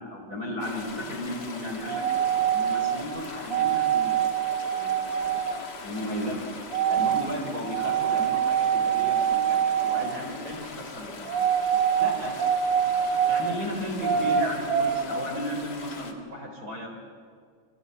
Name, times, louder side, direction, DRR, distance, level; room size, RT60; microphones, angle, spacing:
voice 1, 0.0-2.1 2.5-4.2 4.7-5.4 5.8-6.5 6.9-11.3 12.0-12.4 13.3-16.9, equal, 20° right, 1 dB, 3.8 m, -35 dB
sound 1, 0.6-16.1, left 4 dB, 65° left, 1.0 m, -41 dB
sound 2, 1.9-3.0 3.5-5.6 6.7-7.3 7.6-10.2 11.3-13.6 14.0-15.0, right 9 dB, 85° right, 1.9 m, -25 dB
29.5 x 25.0 x 8.0 m, 2.1 s
omnidirectional pair, 5.6 m